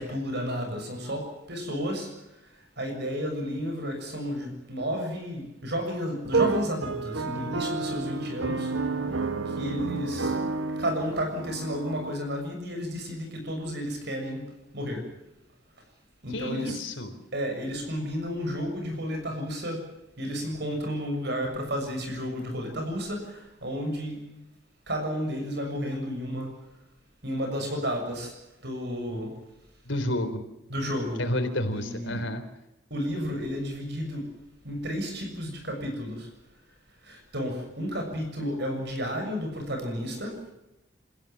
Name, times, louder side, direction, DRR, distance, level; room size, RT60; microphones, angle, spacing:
voice 1, 0.0-9.0 9.4-10.4 10.8-14.5 14.7-15.0 16.2-16.8 17.3-19.8 20.2-24.2 24.9-26.5 27.2-28.4 28.6-29.3 30.7-31.2 31.7-32.2 32.9-34.3 34.6-36.3 37.0-40.4, equal, 55° right, 5 dB, 6.7 m, -32 dB
sound 1, 6.2-12.1, right 4 dB, 80° right, 1.6 m, -30 dB
voice 2, 16.3-17.1 29.8-30.4 31.2-32.4, left 1 dB, 70° left, 8 dB, 3.8 m, -30 dB
29.5 x 15.5 x 7.4 m, 0.91 s
head